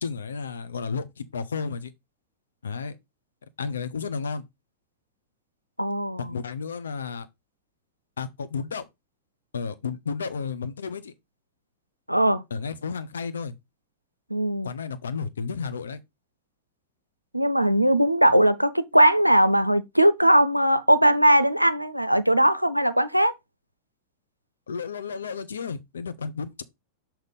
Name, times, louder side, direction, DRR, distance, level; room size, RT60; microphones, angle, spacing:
voice 1, 0.0-1.9 2.6-3.0 3.6-4.4 6.2-7.3 8.2-8.9 9.5-11.1 12.5-13.5 14.6-16.0 24.7-26.6, left 5 dB, 70° left, 0.7 m, -32 dB
voice 2, 5.8-6.3 12.1-12.4 14.3-14.7 17.3-23.3, right 1 dB, 90° right, 0.5 m, -20 dB
6.6 x 3.0 x 5.2 m
figure-of-eight pair, 90°, 0 cm